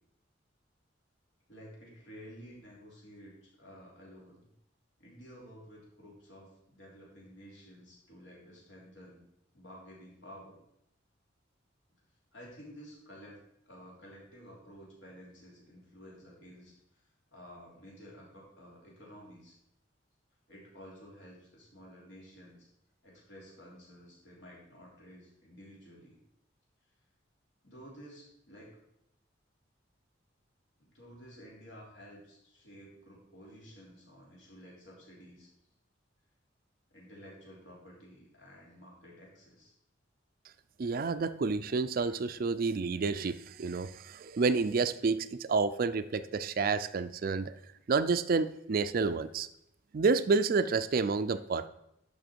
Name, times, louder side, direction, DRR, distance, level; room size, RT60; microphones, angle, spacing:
voice 1, 1.5-4.5 5.0-9.2 9.5-10.6 12.3-17.0 17.3-19.6 20.5-22.7 23.0-26.2 27.6-28.8 30.8-35.5 36.9-39.7, equal, 75° left, -4 dB, 3.6 m, -52 dB
voice 2, 40.8-47.6 47.9-49.5 49.9-51.7, right 4 dB, 50° right, 13 dB, 0.4 m, -29 dB
11.0 x 5.9 x 4.6 m, 0.78 s
head